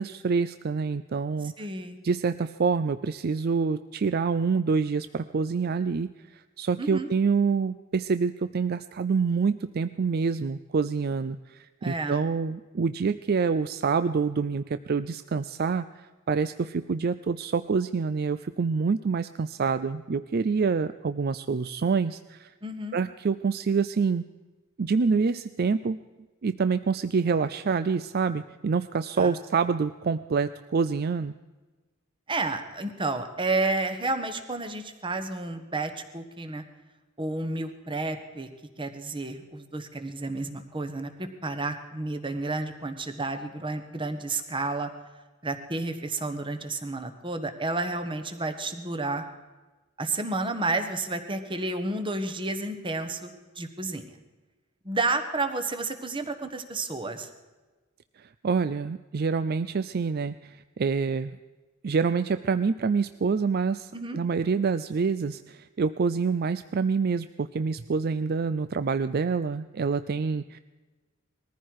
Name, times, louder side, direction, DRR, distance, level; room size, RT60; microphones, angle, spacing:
voice 1, 0.0-1.5 2.0-22.5 22.9-24.2 24.8-26.0 26.4-31.3 58.2-61.3 61.8-70.6, right 5 dB, 50° right, 13 dB, 0.4 m, -27 dB
voice 2, 1.4-2.0 6.8-7.1 11.8-12.2 22.6-23.0 29.2-29.4 32.3-36.6 37.2-38.5 38.8-44.9 45.4-49.2 50.0-54.2 54.8-57.3 63.9-64.2, right 2 dB, 25° right, 8 dB, 1.3 m, -31 dB
21.0 x 14.5 x 4.8 m, 1.2 s
head